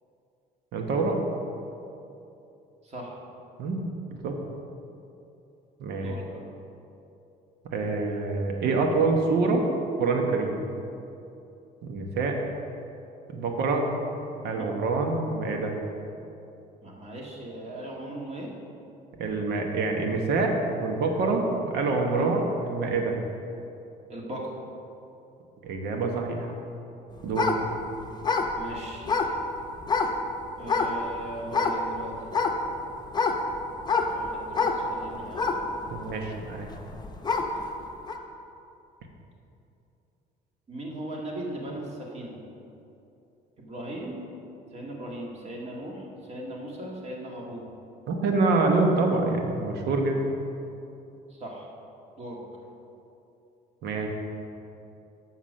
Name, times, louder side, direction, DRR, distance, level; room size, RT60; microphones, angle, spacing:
voice 1, 0.7-1.2 3.6-4.3 5.8-6.2 7.7-9.7 10.0-10.6 11.8-12.4 13.3-13.9 14.4-15.7 19.2-23.1 25.6-26.5 27.2-27.5 35.9-36.7 48.1-50.2 53.8-54.1, right 3 dB, 75° right, 2 dB, 1.1 m, -26 dB
voice 2, 6.0-6.5 14.5-14.7 16.8-18.5 22.1-22.3 24.1-24.4 28.5-29.1 30.6-32.2 34.1-35.5 40.7-42.4 43.6-44.3 44.7-46.0 46.3-47.7 51.3-51.7 52.2-52.4, right 1 dB, 40° right, -2 dB, 1.8 m, -38 dB
sound 1, 27.3-30.2 30.7-31.1 31.4-31.9 32.3-37.6 38.1-38.2, left 4 dB, 25° left, 0.8 m, -26 dB
7.3 x 5.9 x 6.4 m, 2.8 s
cardioid pair, 110°, 17 cm